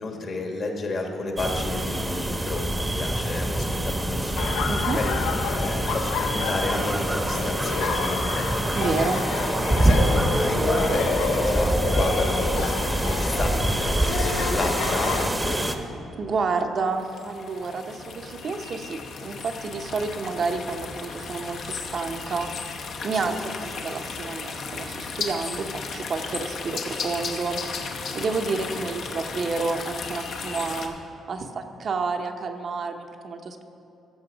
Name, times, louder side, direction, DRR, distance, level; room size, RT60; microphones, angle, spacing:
voice 1, 0.0-5.1 5.5-8.5 9.1-9.2 9.8-15.7 23.1-23.3, left 2 dB, 50° left, 2 dB, 1.6 m, -32 dB
sound 1, 1.4-15.7, right 1 dB, 10° right, 0.8 m, -25 dB
Laughter, 4.4-15.3, left 6 dB, 85° left, 0.5 m, -30 dB
voice 2, 4.7-5.0 8.7-9.2 16.2-22.5 23.0-23.3 23.6-27.8 28.1-30.9 31.3-33.6, right 4 dB, 50° right, 5 dB, 0.7 m, -30 dB
sound 2, 16.9-30.9, left 4 dB, 70° left, 0.9 m, -35 dB
14.5 x 5.8 x 4.9 m, 2.8 s
cardioid pair, 90°, 0 cm